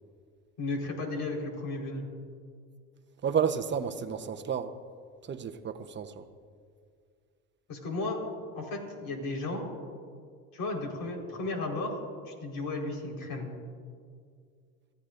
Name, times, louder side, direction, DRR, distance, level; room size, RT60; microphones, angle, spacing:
voice 1, 0.6-2.1 7.7-8.2 8.5-9.6 10.5-12.0 12.3-13.5, left 2 dB, 60° left, 0 dB, 4.5 m, -34 dB
voice 2, 3.2-4.8 5.2-6.2, right 7 dB, 30° right, 8 dB, 1.0 m, -31 dB
28.0 x 15.0 x 2.6 m, 2.1 s
supercardioid pair, 105°, 39 cm